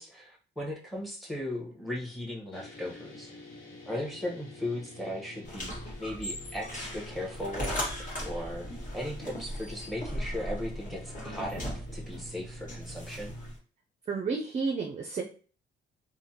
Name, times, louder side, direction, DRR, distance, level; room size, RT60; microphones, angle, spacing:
voice 1, 0.0-3.3 3.8-7.8 8.2-8.7 8.9-13.4, left 1 dB, ahead, -1 dB, 1.0 m, -37 dB
sound 1, 2.5-13.5, left 1 dB, 85° left, 0.9 m, -48 dB
sound 2, 5.4-13.6, equal, 40° left, 1.2 m, -38 dB
voice 2, 14.1-15.2, right 4 dB, 35° right, 2 dB, 0.4 m, -31 dB
3.3 x 2.1 x 2.7 m, 0.40 s
cardioid pair, 90°, 20 cm